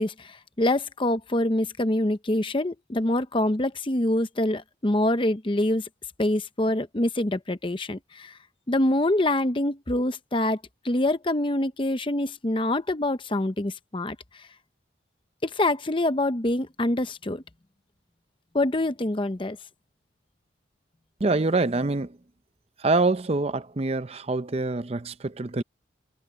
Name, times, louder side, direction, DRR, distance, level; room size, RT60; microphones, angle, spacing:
voice 1, 0.0-5.9 6.2-8.4 8.7-10.6 10.8-14.5 15.4-17.4 18.5-19.6, left 1 dB, 25° left, 0.8 m, -25 dB
voice 2, 21.2-22.1 22.8-25.6, right 3 dB, 35° right, 0.6 m, -25 dB
head